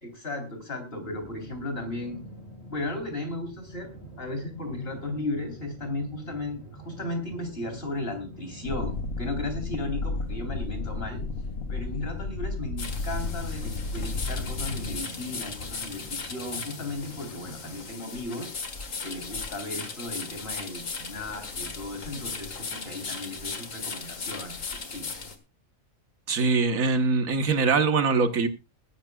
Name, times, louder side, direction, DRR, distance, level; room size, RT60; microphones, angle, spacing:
voice 1, 0.0-2.2 2.7-3.9 4.2-11.2 11.7-18.5 19.0-25.2, left 2 dB, 45° left, 4.1 m, -35 dB
sound 1, 1.0-17.8, right 1 dB, 20° left, 7.6 m, -46 dB
sound 2, 8.6-15.0, left 3 dB, 85° left, 1.6 m, -32 dB
sound 3, 12.8-25.4, left 4 dB, 70° left, 2.1 m, -37 dB
voice 2, 26.3-28.5, right 4 dB, 80° right, 1.7 m, -23 dB
21.0 x 11.5 x 2.4 m
omnidirectional pair, 1.4 m